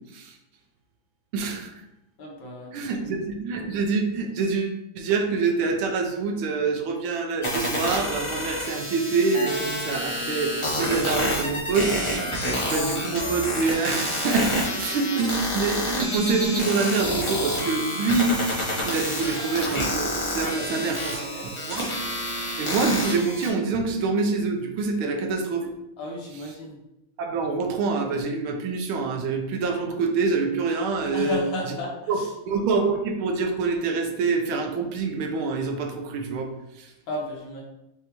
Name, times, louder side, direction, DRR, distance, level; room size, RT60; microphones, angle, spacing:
voice 1, 1.3-1.7 2.7-11.9 12.3-18.3 18.8-21.9 22.6-25.7 27.2-31.4 32.1-32.2 32.5-36.5 36.8-36.9, right 4 dB, 85° right, 3 dB, 1.5 m, -26 dB
voice 2, 2.2-2.7 3.0-3.2 20.5-21.5 25.0-25.1 26.0-26.8 31.1-32.3 37.1-37.6, equal, 75° left, -1 dB, 1.8 m, -34 dB
sound 1, 7.4-23.5, left 1 dB, 25° left, 0.7 m, -28 dB
5.3 x 3.4 x 2.9 m, 0.88 s
omnidirectional pair, 2.2 m